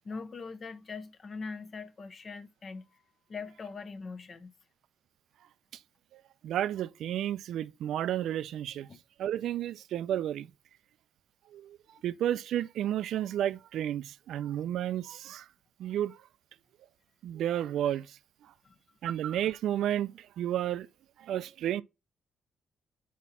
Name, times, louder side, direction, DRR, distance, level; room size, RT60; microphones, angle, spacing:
voice 1, 0.0-3.0 3.3-4.5 8.9-9.0 11.9-12.0 18.6-18.8, left 4 dB, 40° left, 0.9 m, -42 dB
voice 2, 6.1-8.9 9.2-10.5 11.5-11.8 12.0-15.5 15.8-16.2 17.2-18.1 19.0-20.9 21.2-21.8, right 11 dB, 75° right, 0.3 m, -32 dB
5.0 x 4.2 x 5.5 m
cardioid pair, 90°, 0 cm